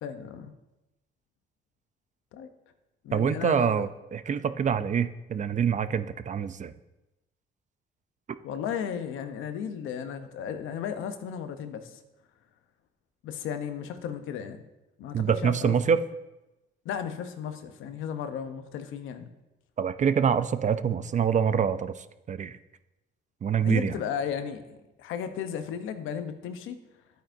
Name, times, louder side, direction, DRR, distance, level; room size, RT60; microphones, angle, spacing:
voice 1, 0.0-0.5 2.3-2.5 3.0-3.9 8.4-12.0 13.2-14.6 15.0-15.8 16.8-19.3 23.6-26.8, left 8 dB, 90° left, 9 dB, 0.8 m, -35 dB
voice 2, 3.1-6.7 15.1-16.0 19.8-22.6 23.4-24.0, right 7 dB, 40° right, 13 dB, 0.5 m, -26 dB
11.5 x 9.0 x 2.7 m, 0.99 s
cardioid pair, 90°, 20 cm